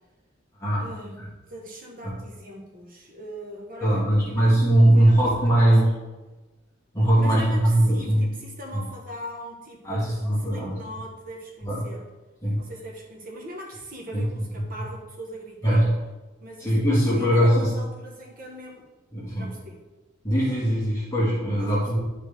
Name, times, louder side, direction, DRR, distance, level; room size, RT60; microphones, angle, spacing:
voice 1, 0.8-1.2 1.5-5.8 7.1-10.1 10.4-12.0 12.6-15.9 16.4-16.8 17.1-18.9 19.3-19.8 21.6-22.0, right 1 dB, 45° right, 0 dB, 1.2 m, -40 dB
voice 2, 3.8-5.8 6.9-8.2 8.7-8.8 9.8-10.8 11.6-11.8 12.4-12.6 14.1-14.3 15.6-15.9 16.6-17.7 19.1-19.5 20.2-22.0, right 1 dB, 15° left, -7 dB, 1.8 m, -20 dB
11.0 x 4.6 x 3.5 m, 1.2 s
head